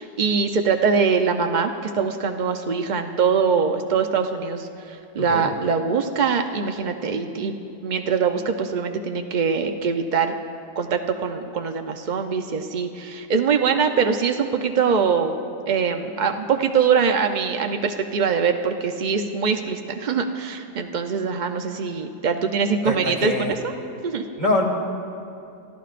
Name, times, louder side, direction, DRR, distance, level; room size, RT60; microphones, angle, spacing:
voice 1, 0.0-7.5 7.8-10.3 10.8-15.4 15.7-23.7 24.0-24.2, right 6 dB, 70° right, 5 dB, 0.4 m, -23 dB
voice 2, 22.8-23.5 24.4-24.6, left 2 dB, 30° right, -1 dB, 2.4 m, -24 dB
28.5 x 14.5 x 2.5 m, 2.6 s
omnidirectional pair, 1.7 m